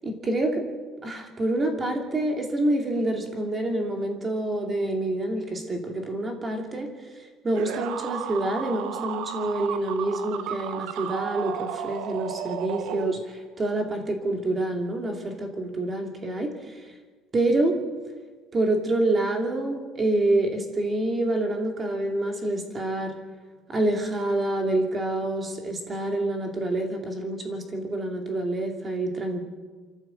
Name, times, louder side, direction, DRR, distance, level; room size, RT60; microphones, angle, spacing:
voice 1, 0.0-0.6 1.0-6.9 7.4-13.2 13.6-16.8 17.3-17.8 18.5-23.2 23.7-29.5, right 2 dB, 20° right, 3 dB, 2.6 m, -27 dB
sound 1, 7.5-13.6, right 10 dB, 70° right, 1.1 m, -33 dB
25.0 x 14.5 x 7.8 m, 1.4 s
cardioid pair, 175°, 0 cm